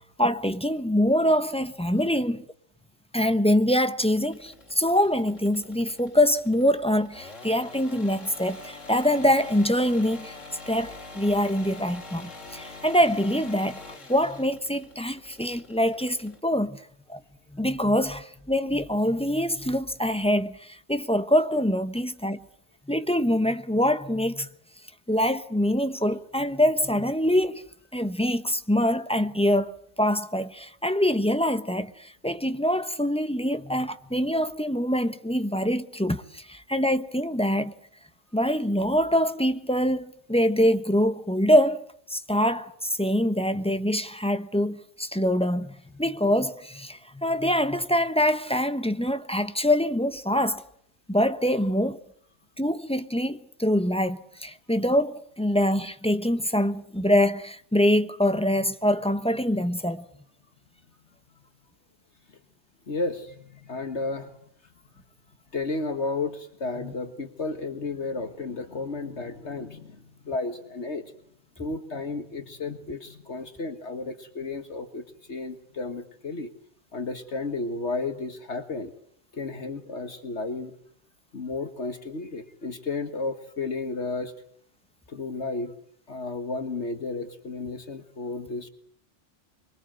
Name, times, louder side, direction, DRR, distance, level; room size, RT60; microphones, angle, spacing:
voice 1, 0.2-2.4 3.1-10.3 10.7-16.8 17.1-17.2 17.5-22.4 22.9-24.5 25.1-27.6 27.9-37.7 38.3-41.8 42.1-50.6 51.1-52.0 52.6-60.0, equal, 5° left, 0.9 m, -24 dB
sound 1, 4.1-16.4, left 3 dB, 80° left, 3.2 m, -45 dB
voice 2, 62.9-64.3 65.5-71.0 71.6-76.5 76.9-78.9 79.3-80.7 81.3-84.3 85.1-85.7 86.1-88.7, left 3 dB, 65° left, 2.0 m, -33 dB
25.0 x 23.0 x 7.8 m
omnidirectional pair, 1.3 m